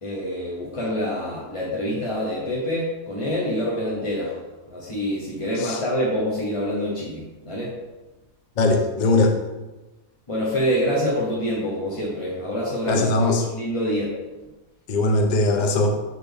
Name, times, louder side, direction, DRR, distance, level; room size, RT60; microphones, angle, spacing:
voice 1, 0.0-4.3 4.7-7.7 10.3-14.1, equal, 25° left, -5 dB, 0.8 m, -26 dB
voice 2, 8.6-9.4 12.9-13.4 14.9-16.0, left 2 dB, 55° left, 3 dB, 0.5 m, -20 dB
6.4 x 4.2 x 3.4 m, 1.1 s
omnidirectional pair, 1.5 m